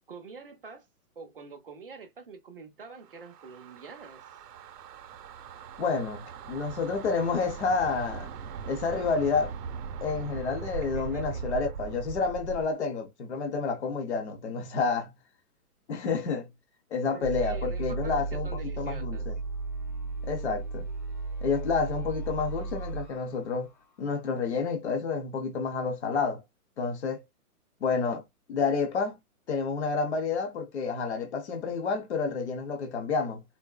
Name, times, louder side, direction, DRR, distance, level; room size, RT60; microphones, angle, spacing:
voice 1, 0.1-0.8 1.2-4.2 10.8-11.4 17.1-18.1 18.4-19.2, right 5 dB, 40° right, 0.5 m, -46 dB
sound 1, 2.9-12.7, right 6 dB, 80° right, 0.7 m, -40 dB
voice 2, 5.8-8.3 8.7-9.5 10.0-15.1 15.9-16.5 16.9-19.4 20.2-20.9 21.4-23.7 24.0-26.4 26.8-27.2 27.8-28.2 28.5-29.2 29.5-33.4, left 5 dB, 45° left, 0.8 m, -29 dB
sound 2, 17.2-24.2, right 3 dB, 30° left, 0.5 m, -35 dB
4.0 x 2.1 x 2.2 m
hypercardioid pair, 175°, 46 cm